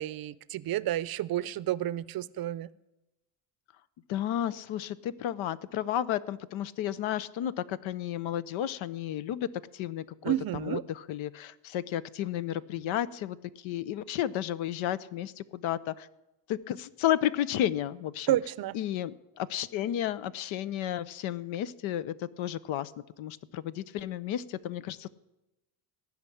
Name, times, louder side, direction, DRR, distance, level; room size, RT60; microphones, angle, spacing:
voice 1, 0.0-2.7 10.2-10.8 18.3-18.8, right 13 dB, 50° right, 19 dB, 0.6 m, -30 dB
voice 2, 4.1-9.5 9.8-10.3 10.6-10.8 11.1-13.4 13.6-16.1 16.5-18.4 18.7-22.9 23.2-25.1, left 11 dB, 80° left, 17 dB, 0.8 m, -32 dB
16.0 x 5.9 x 9.9 m, 0.93 s
cardioid pair, 105°, 47 cm